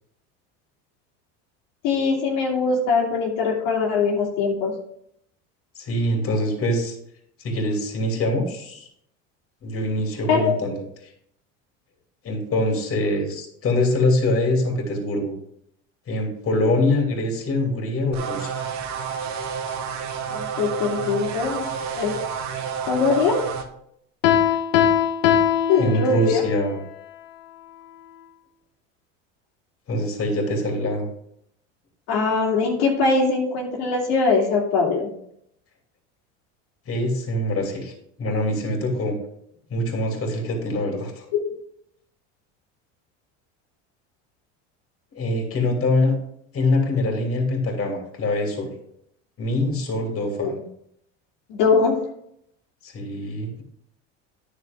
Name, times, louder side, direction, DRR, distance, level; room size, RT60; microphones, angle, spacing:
voice 1, 1.8-4.7 10.3-10.6 20.3-21.6 21.9-22.2 22.9-23.4 25.7-26.4 32.1-35.1 41.3-41.4 50.4-50.5 51.5-52.0, left 4 dB, 70° left, -2 dB, 2.5 m, -21 dB
voice 2, 5.8-7.0 7.4-8.9 9.6-10.8 12.2-15.3 16.1-18.6 25.8-26.7 29.9-31.1 36.9-37.9 38.2-39.2 39.7-41.3 45.1-46.1 46.5-48.7 49.4-50.5 52.8-53.6, left 1 dB, 35° left, 2 dB, 2.9 m, -24 dB
sound 1, 18.1-23.6, right 7 dB, 50° right, 1.5 m, -30 dB
Piano, 24.2-26.5, left 9 dB, 90° left, 1.1 m, -20 dB
10.0 x 6.6 x 3.6 m, 0.72 s
supercardioid pair, 90°, 36 cm